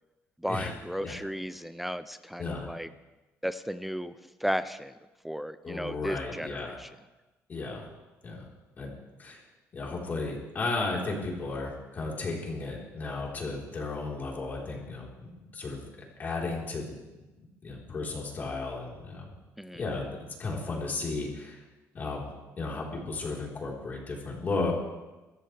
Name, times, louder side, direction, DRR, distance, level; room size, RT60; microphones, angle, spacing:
voice 1, 0.4-2.9 3.4-4.2 4.4-5.0 5.2-6.9 19.6-19.8, equal, 5° right, 12 dB, 0.4 m, -34 dB
voice 2, 5.6-6.8 7.5-7.9 8.2-8.5 8.8-9.4 9.7-15.9 16.2-17.0 17.6-19.3 19.7-21.6 21.9-22.3 22.6-24.7, left 3 dB, 35° left, -2 dB, 4.0 m, -34 dB
24.5 x 13.5 x 3.4 m, 1.1 s
cardioid pair, 135°, 6 cm